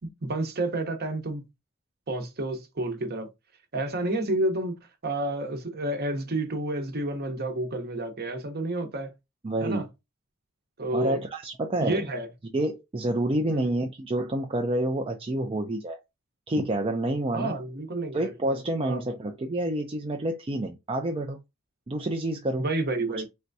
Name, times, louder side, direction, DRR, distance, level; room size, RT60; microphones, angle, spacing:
voice 1, 0.2-1.5 2.1-3.3 3.7-4.8 5.0-9.1 9.6-9.9 10.8-11.2 11.8-12.3 13.5-13.6 17.3-18.3 18.8-19.0 22.6-23.2, right 2 dB, 45° right, 0.9 m, -30 dB
voice 2, 9.4-9.9 10.9-12.0 12.5-16.0 16.5-17.5 18.1-21.4 21.9-22.6, right 1 dB, 25° right, 0.4 m, -28 dB
4.3 x 3.4 x 2.6 m
head